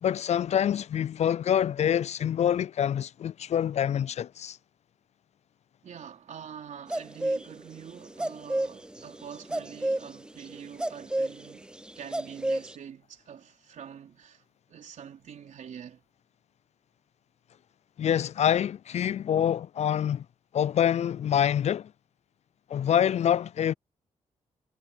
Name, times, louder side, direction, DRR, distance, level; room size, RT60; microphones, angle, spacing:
voice 1, 0.0-4.6 18.0-20.3 20.5-21.9 22.7-23.7, left 9 dB, 60° left, 0.4 m, -26 dB
voice 2, 5.8-14.4 14.7-16.0, right 8 dB, 75° right, 4.1 m, -45 dB
sound 1, 6.9-7.5 7.8-7.9 8.1-12.7, right 1 dB, 5° right, 0.4 m, -30 dB
cardioid pair, 75°, 13 cm